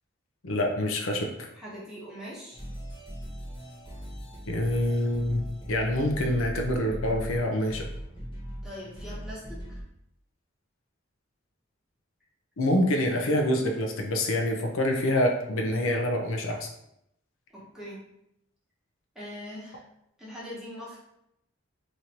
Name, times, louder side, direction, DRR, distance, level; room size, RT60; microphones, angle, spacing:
voice 1, 0.4-1.5 4.5-5.4 5.7-7.9 12.6-16.7, left 1 dB, 90° left, 2 dB, 0.6 m, -26 dB
voice 2, 1.5-2.6 8.6-9.8 17.5-18.0 19.1-19.8 20.2-21.0, equal, 5° right, -7 dB, 1.0 m, -42 dB
sound 1, 2.5-9.8, equal, 25° left, 1.1 m, -39 dB
3.1 x 2.6 x 4.2 m, 0.78 s
head